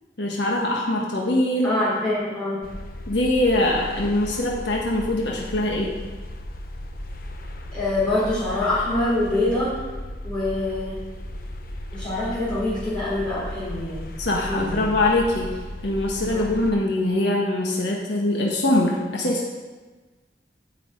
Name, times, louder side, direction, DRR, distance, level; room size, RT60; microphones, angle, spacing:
voice 1, 0.2-1.7 3.1-5.9 14.2-15.6 15.8-19.4, left 1 dB, 75° left, -2 dB, 1.4 m, -23 dB
voice 2, 1.6-2.6 7.7-9.8 10.2-11.0 11.9-14.0 14.3-14.8 16.3-16.4, left 2 dB, 5° left, -11 dB, 4.0 m, -25 dB
sound 1, 2.6-16.7, left 1 dB, 55° left, 1.0 m, -36 dB
9.5 x 5.8 x 8.3 m, 1.3 s
head